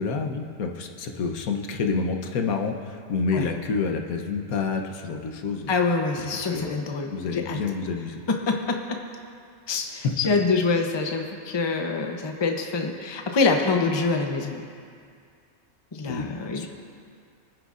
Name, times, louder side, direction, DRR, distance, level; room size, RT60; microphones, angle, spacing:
voice 1, 0.0-5.7 6.4-6.8 7.1-8.2 10.0-10.2 16.1-16.7, left 4 dB, 85° left, 4 dB, 1.4 m, -28 dB
voice 2, 5.7-7.6 8.3-9.0 9.7-14.6 15.9-16.7, left 4 dB, 25° left, 3 dB, 0.6 m, -25 dB
24.5 x 9.5 x 2.5 m, 2.2 s
omnidirectional pair, 1.5 m